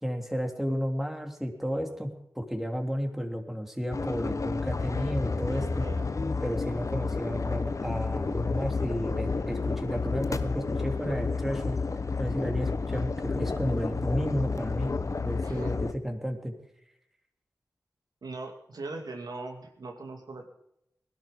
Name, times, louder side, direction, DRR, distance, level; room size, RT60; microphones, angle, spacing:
voice 1, 0.0-5.8 6.4-11.8 12.2-14.9 15.2-16.5, equal, 5° right, 3 dB, 3.0 m, -32 dB
sound 1, 3.9-15.9, left 4 dB, 50° left, 1.2 m, -31 dB
voice 2, 5.5-6.1 15.4-15.8 18.2-20.5, right 3 dB, 75° right, 2 dB, 2.6 m, -40 dB
17.5 x 12.0 x 5.2 m, 0.79 s
cardioid pair, 45°, 7 cm